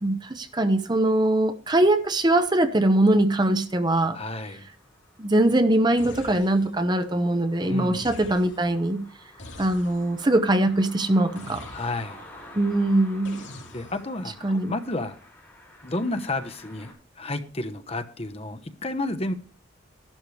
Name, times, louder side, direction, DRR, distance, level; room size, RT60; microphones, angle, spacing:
voice 1, 0.0-4.2 5.2-9.0 9.6-11.7 12.5-13.4 14.4-14.7, right 1 dB, 20° right, 0.7 m, -22 dB
sound 1, 2.3-16.9, left 1 dB, 10° left, 5.6 m, -50 dB
voice 2, 4.1-4.7 7.6-8.1 11.7-12.2 13.7-15.2 15.8-19.3, left 2 dB, 30° left, 0.9 m, -31 dB
sound 2, 6.0-6.9 7.9-8.8 9.4-10.3 11.4-12.3 13.2-14.2, left 2 dB, 65° left, 2.9 m, -44 dB
12.5 x 11.5 x 3.2 m
head